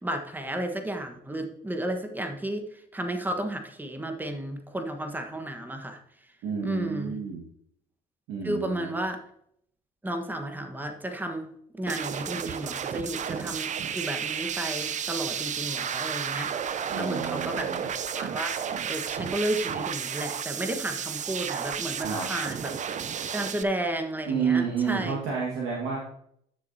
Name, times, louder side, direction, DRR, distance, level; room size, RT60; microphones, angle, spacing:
voice 1, 0.0-6.0 6.6-7.2 8.4-9.2 10.0-16.5 16.9-17.9 18.1-18.6 18.9-22.8 23.3-25.2, right 1 dB, 10° right, 5 dB, 1.4 m, -33 dB
voice 2, 6.4-7.4 8.3-8.9 16.9-17.9 22.0-22.3 24.3-26.0, right 6 dB, 70° right, -3 dB, 1.8 m, -30 dB
sound 1, 11.9-23.6, right 8 dB, 40° right, 0.6 m, -32 dB
11.5 x 6.6 x 2.8 m, 0.70 s
hypercardioid pair, 65°, 20 cm